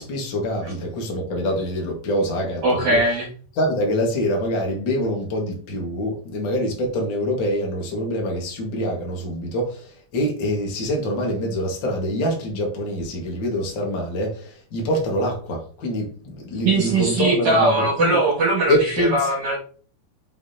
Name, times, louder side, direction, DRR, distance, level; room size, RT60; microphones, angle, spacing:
voice 1, 0.0-3.0 3.5-18.2 18.7-19.3, equal, 45° left, 0 dB, 1.5 m, -25 dB
voice 2, 2.6-3.3 16.6-19.6, right 2 dB, 55° right, -5 dB, 3.1 m, -20 dB
7.0 x 5.9 x 2.9 m, 0.43 s
omnidirectional pair, 5.0 m